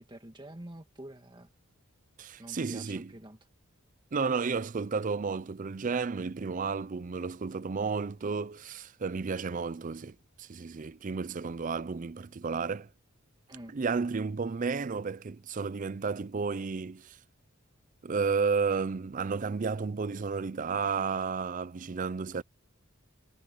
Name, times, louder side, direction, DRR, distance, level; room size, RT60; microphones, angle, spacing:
voice 1, 0.0-1.5 2.4-3.4 13.5-13.8, right 1 dB, 20° right, 1.6 m, -47 dB
voice 2, 2.2-3.1 4.1-12.9 13.7-17.2 18.0-22.4, right 5 dB, 40° right, 0.4 m, -32 dB
head